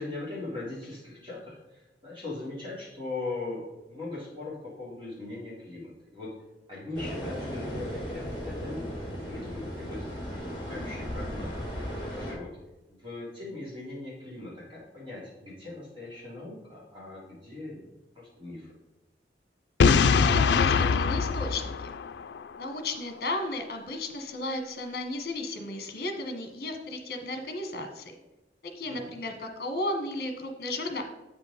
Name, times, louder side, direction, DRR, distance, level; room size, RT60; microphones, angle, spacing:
voice 1, 0.0-6.3 6.7-8.9 9.2-11.6 12.1-12.5 12.9-17.9 18.1-18.7 28.8-29.0, left 2 dB, 30° right, -7 dB, 3.4 m, -40 dB
sound 1, 6.9-12.3, equal, 25° left, 2.9 m, -36 dB
Boom, 19.8-22.7, left 5 dB, 80° left, 0.4 m, -23 dB
voice 2, 20.1-21.9 22.6-28.1 28.7-31.0, left 2 dB, 60° left, 6 dB, 1.4 m, -34 dB
8.5 x 5.3 x 5.1 m, 1.0 s
head